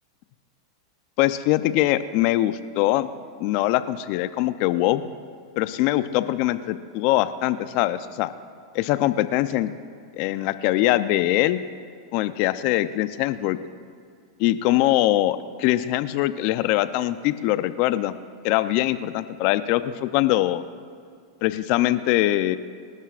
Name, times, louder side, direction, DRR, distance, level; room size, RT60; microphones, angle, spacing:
voice 1, 1.2-3.1 3.4-5.0 5.6-8.3 8.7-9.7 10.2-11.6 12.1-13.6 14.4-18.1 18.4-20.6 21.4-22.6, left 15 dB, 50° left, 13 dB, 0.7 m, -22 dB
26.5 x 12.0 x 2.5 m, 2.2 s
hypercardioid pair, 110°, 2 cm